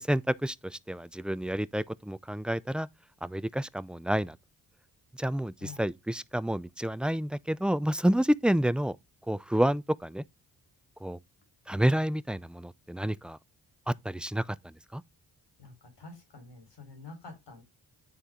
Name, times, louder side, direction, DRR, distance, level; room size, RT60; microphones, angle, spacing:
voice 1, 0.0-2.9 3.2-4.4 5.2-9.0 9.3-10.2 11.0-11.2 11.7-13.4 13.9-14.5 14.9-15.0, right 1 dB, ahead, 0.5 m, -29 dB
voice 2, 15.6-17.6, left 4 dB, 70° left, 4.6 m, -47 dB
9.5 x 4.1 x 3.7 m
supercardioid pair, 50°, 43 cm